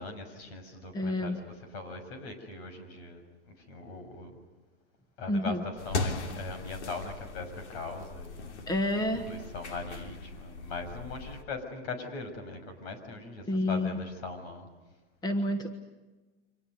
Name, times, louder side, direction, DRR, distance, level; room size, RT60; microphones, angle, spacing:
voice 1, 0.0-4.3 5.2-8.6 9.2-14.7, left 3 dB, 65° left, 8 dB, 6.7 m, -40 dB
voice 2, 0.9-1.4 5.3-5.6 8.7-9.3 13.5-14.0 15.2-15.7, left 1 dB, 10° left, 8 dB, 1.5 m, -29 dB
sound 1, 5.8-11.4, left 3 dB, 90° left, 2.9 m, -38 dB
29.0 x 25.0 x 6.7 m, 1.2 s
supercardioid pair, 150°, 34 cm